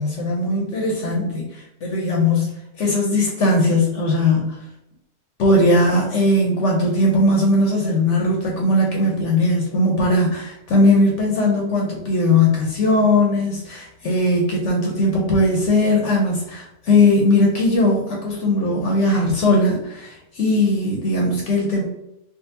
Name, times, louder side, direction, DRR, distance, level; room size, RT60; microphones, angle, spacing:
voice 1, 0.0-2.5 2.8-4.7 5.4-21.8, left 2 dB, 60° left, -1 dB, 0.8 m, -19 dB
3.7 x 2.4 x 2.6 m, 0.81 s
omnidirectional pair, 1.7 m